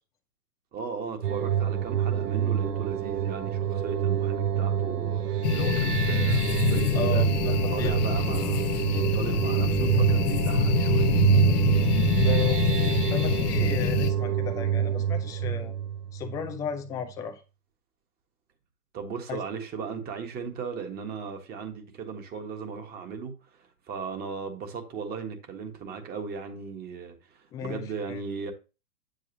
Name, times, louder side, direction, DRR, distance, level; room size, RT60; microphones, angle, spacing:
voice 1, 0.7-11.1 18.9-23.3 23.9-28.5, right 5 dB, 20° right, 1.7 m, -37 dB
sound 1, 1.2-16.7, right 9 dB, 75° right, 1.0 m, -26 dB
sound 2, 5.4-14.1, left 10 dB, 30° left, 0.9 m, -26 dB
voice 2, 6.9-8.0 12.2-15.7 16.1-17.4 19.3-19.4 27.5-28.2, left 7 dB, 5° left, 0.5 m, -35 dB
9.1 x 7.7 x 2.8 m
figure-of-eight pair, 115°, 47 cm